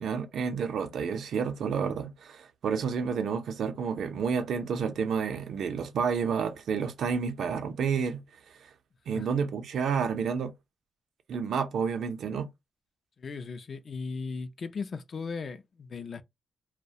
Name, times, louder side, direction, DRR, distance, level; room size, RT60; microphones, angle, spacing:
voice 1, 0.0-8.2 8.6-8.7 9.1-10.5 11.3-12.5, right 6 dB, 80° right, 0.4 m, -30 dB
voice 2, 13.2-16.2, left 4 dB, 50° left, 0.3 m, -37 dB
2.3 x 2.1 x 2.6 m
cardioid pair, 90°, 0 cm